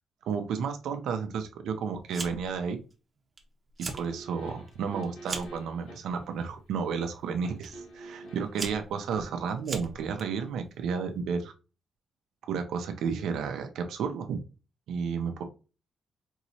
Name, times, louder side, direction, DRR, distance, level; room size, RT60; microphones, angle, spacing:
voice 1, 0.3-2.8 3.9-11.5 12.5-14.4 14.9-15.4, right 6 dB, 85° right, 6 dB, 0.7 m, -32 dB
Fire, 2.1-2.6 2.9-3.4 3.7-4.1 4.5-5.6 6.4-6.7 7.6-7.7 8.3-10.2, right 3 dB, 25° right, 0.7 m, -38 dB
sound 1, 3.9-6.2 7.4-8.6 9.1-9.2, right 2 dB, 70° left, 2.4 m, -46 dB
4.6 x 3.0 x 2.7 m, 0.32 s
cardioid pair, 160°, 0 cm